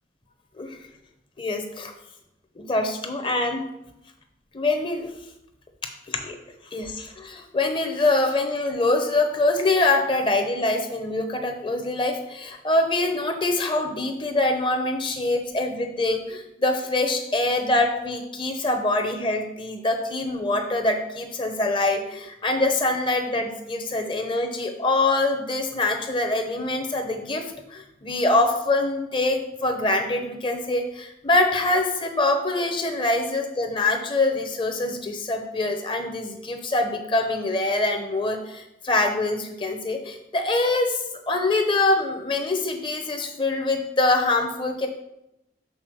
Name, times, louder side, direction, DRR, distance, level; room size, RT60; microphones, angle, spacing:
voice 1, 1.4-1.9 2.6-3.7 4.5-5.1 6.1-6.4 6.7-27.4 27.7-44.9, left 2 dB, 30° left, 4 dB, 0.8 m, -24 dB
6.3 x 3.8 x 6.2 m, 0.85 s
head